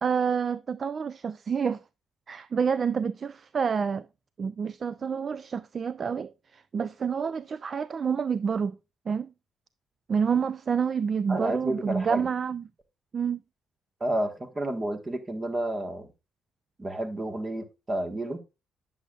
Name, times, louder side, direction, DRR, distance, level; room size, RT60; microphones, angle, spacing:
voice 1, 0.0-1.8 2.3-4.1 4.4-8.8 9.1-9.3 10.1-12.6 13.1-13.4, right 6 dB, 45° right, 0.3 m, -28 dB
voice 2, 11.3-12.3 14.0-16.1 16.8-18.4, right 1 dB, 25° right, 1.5 m, -30 dB
9.7 x 7.0 x 2.4 m
cardioid pair, 90°, 0 cm